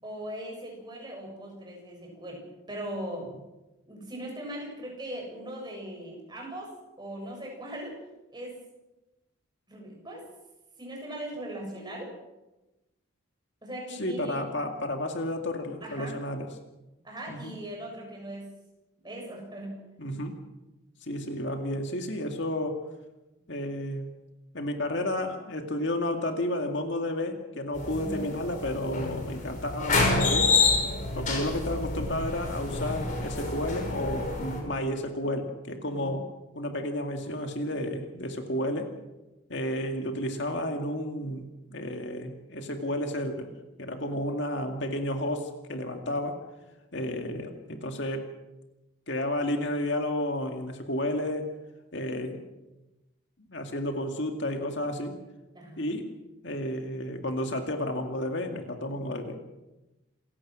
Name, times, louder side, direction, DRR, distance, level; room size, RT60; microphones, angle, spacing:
voice 1, 0.0-2.4 2.7-3.3 3.9-6.7 7.0-8.0 8.3-8.6 9.7-10.2 10.8-12.1 13.6-14.4 15.8-16.2 17.0-18.5 19.0-19.8 28.0-28.3 35.9-36.2 55.5-55.9, right 1 dB, 20° right, -1 dB, 7.3 m, -39 dB
voice 2, 14.0-16.5 17.3-17.6 20.0-20.3 21.0-22.8 23.5-24.1 24.5-30.5 31.1-36.2 36.6-38.9 39.5-43.5 43.8-46.4 46.9-48.3 49.1-51.5 51.9-52.4 53.5-55.1 55.8-56.0 56.4-59.4, left 1 dB, 55° left, 4 dB, 2.2 m, -31 dB
sound 1, 27.7-34.6, left 3 dB, 35° left, 5.1 m, -28 dB
28.0 x 16.0 x 6.3 m, 1.0 s
head